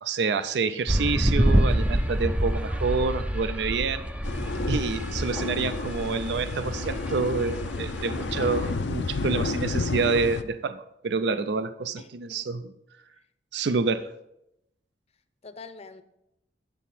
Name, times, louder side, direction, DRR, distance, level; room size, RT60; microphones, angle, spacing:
voice 1, 0.0-4.0 4.7-12.7 13.5-14.1, right 4 dB, 70° right, 12 dB, 0.4 m, -28 dB
sound 1, 0.9-8.9, equal, 5° right, 0.4 m, -27 dB
sound 2, 4.2-10.4, left 3 dB, 80° left, 0.5 m, -31 dB
voice 2, 12.0-12.5 15.4-16.0, left 4 dB, 35° left, 11 dB, 0.6 m, -45 dB
9.0 x 7.2 x 4.2 m, 0.84 s
head